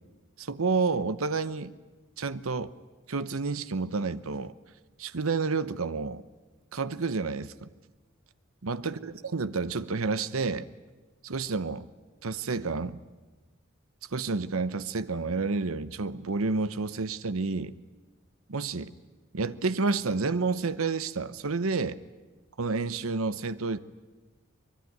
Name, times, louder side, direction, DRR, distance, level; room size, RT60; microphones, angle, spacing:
voice 1, 0.4-1.7 2.2-2.7 3.1-4.5 5.0-6.2 6.7-7.7 8.6-10.7 11.2-11.8 12.2-13.0 14.1-17.7 18.5-18.9 19.3-22.0 22.6-23.8, right 4 dB, 85° right, 14 dB, 0.9 m, -30 dB
24.5 x 21.0 x 9.3 m, 1.3 s
head